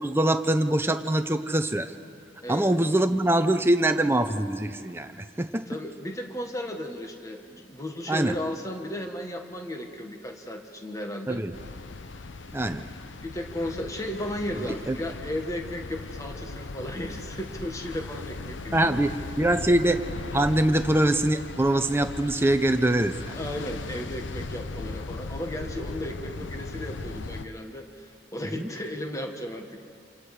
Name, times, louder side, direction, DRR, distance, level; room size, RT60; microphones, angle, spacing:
voice 1, 0.0-1.9 2.5-5.6 8.1-8.4 11.3-11.6 12.5-12.9 14.6-15.0 18.7-20.0 20.3-23.4 28.5-28.7, right 1 dB, 10° right, 7 dB, 0.8 m, -24 dB
voice 2, 5.7-11.4 13.2-19.1 23.3-29.8, left 1 dB, 15° left, 4 dB, 1.5 m, -35 dB
sound 1, 11.5-27.5, left 3 dB, 80° left, 0.8 m, -38 dB
28.0 x 27.5 x 5.0 m, 2.2 s
head